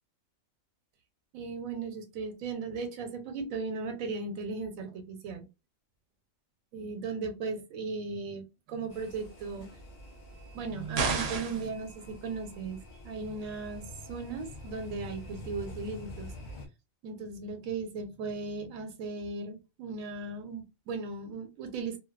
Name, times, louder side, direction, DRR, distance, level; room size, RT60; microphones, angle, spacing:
voice 1, 1.3-5.4 6.7-9.7 10.5-12.8 13.0-16.3 17.0-22.0, right 4 dB, 90° right, 7 dB, 1.0 m, -37 dB
sound 1, 8.9-16.7, left 2 dB, 50° left, 0.6 m, -47 dB
sound 2, 11.0-11.7, right 4 dB, 60° right, 0.7 m, -30 dB
2.6 x 2.1 x 2.2 m, 0.27 s
omnidirectional pair, 1.4 m